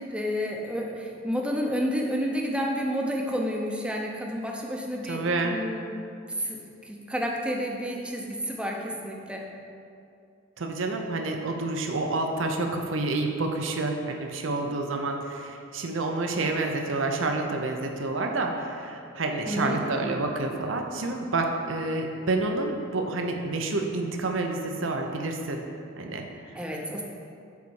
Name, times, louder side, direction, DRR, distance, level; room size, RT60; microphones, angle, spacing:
voice 1, 0.0-5.9 6.4-6.6 6.8-9.4 19.5-19.8 26.5-27.0, equal, 5° right, -1 dB, 0.7 m, -30 dB
voice 2, 5.1-5.6 10.6-25.6 26.0-26.6, right 2 dB, 70° right, 3 dB, 0.7 m, -29 dB
7.1 x 4.1 x 6.3 m, 2.5 s
head